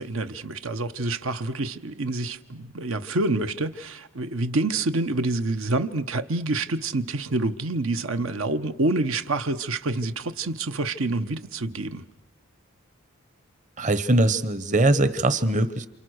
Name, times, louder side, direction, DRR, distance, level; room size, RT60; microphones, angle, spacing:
voice 1, 0.0-12.0, right 2 dB, 75° right, 1.1 m, -27 dB
voice 2, 13.8-15.9, right 2 dB, 35° right, 1.1 m, -21 dB
29.0 x 28.0 x 6.5 m
head